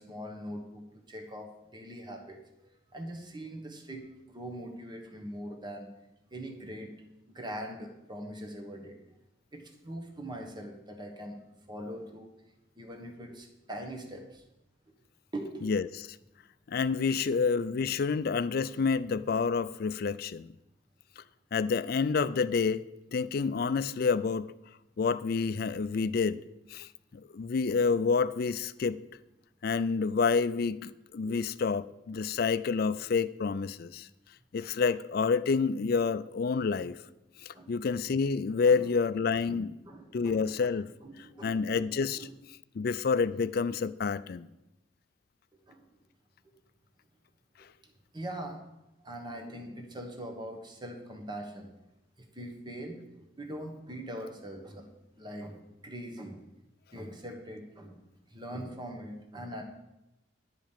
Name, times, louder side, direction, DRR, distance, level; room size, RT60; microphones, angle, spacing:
voice 1, 0.0-2.4 2.9-4.0 4.3-5.9 6.3-7.0 7.3-9.0 9.5-11.4 11.7-12.3 12.8-14.4 15.3-15.7 17.2-17.3 31.2-31.4 37.5-37.7 38.6-38.8 39.5-40.6 41.0-41.9 42.2-42.3 45.7-45.8 48.1-48.6 49.0-51.7 52.3-54.9 55.2-56.4 56.9-58.0 58.3-59.6, right 1 dB, 20° right, 1.2 m, -42 dB
voice 2, 16.7-20.5 21.2-21.3 21.5-22.9 23.1-24.5 25.0-26.4 26.7-29.0 29.6-34.1 34.5-37.0 37.4-39.7 40.1-40.9 41.4-42.3 42.7-44.5, left 5 dB, 50° left, 0.4 m, -28 dB
10.5 x 5.1 x 7.3 m
head